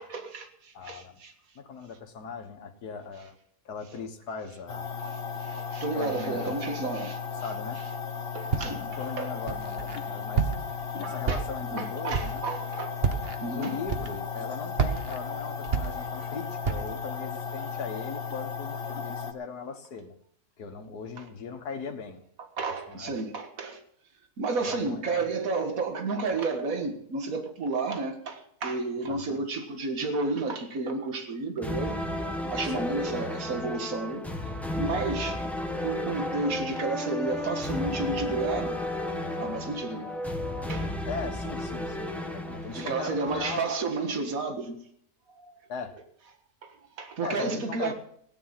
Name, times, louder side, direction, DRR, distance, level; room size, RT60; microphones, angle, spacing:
voice 1, 0.0-1.3 5.1-7.2 8.3-8.8 9.2-9.3 11.0-11.4 11.7-13.8 21.2-21.3 22.6-23.8 24.4-32.0 32.5-35.5 35.8-38.8 39.4-40.1 40.7-40.9 42.7-44.8 45.3-45.5 46.6-47.9, right 3 dB, 60° right, 2.1 m, -32 dB
voice 2, 0.7-1.2 1.6-3.4 3.7-4.9 5.9-6.6 7.4-7.8 8.8-10.5 11.0-12.4 13.5-20.2 20.6-22.3 22.9-23.2 24.7-25.3 29.1-29.4 32.6-33.0 41.1-43.9 45.7-45.9 47.2-47.9, left 5 dB, 75° left, 2.0 m, -39 dB
sound 1, 4.7-19.3, left 6 dB, 40° left, 1.1 m, -35 dB
Walk footsteps, 8.5-9.0 9.5-10.0 10.3-10.8 11.2-11.7 12.1-12.5 13.0-13.4 13.9-14.4 14.7-16.3 16.6-17.0, right 6 dB, 40° right, 1.3 m, -29 dB
sound 2, 31.6-43.6, left 1 dB, ahead, 1.4 m, -33 dB
17.0 x 10.0 x 5.7 m
omnidirectional pair, 1.7 m